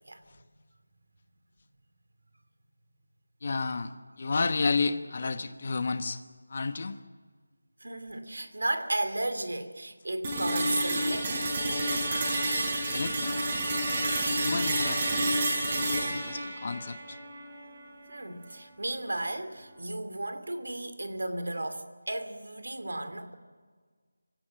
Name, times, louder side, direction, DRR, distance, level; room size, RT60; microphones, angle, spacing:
voice 1, 3.4-6.2 6.5-7.0 12.9-13.4 14.4-15.3 16.1-17.2, left 4 dB, 35° left, 1.1 m, -31 dB
voice 2, 7.8-11.5 18.1-23.3, right 1 dB, 80° right, 2.6 m, -34 dB
sound 1, 10.2-18.3, right 1 dB, 20° right, 4.6 m, -29 dB
25.5 x 17.0 x 7.9 m
figure-of-eight pair, 175°, 0 cm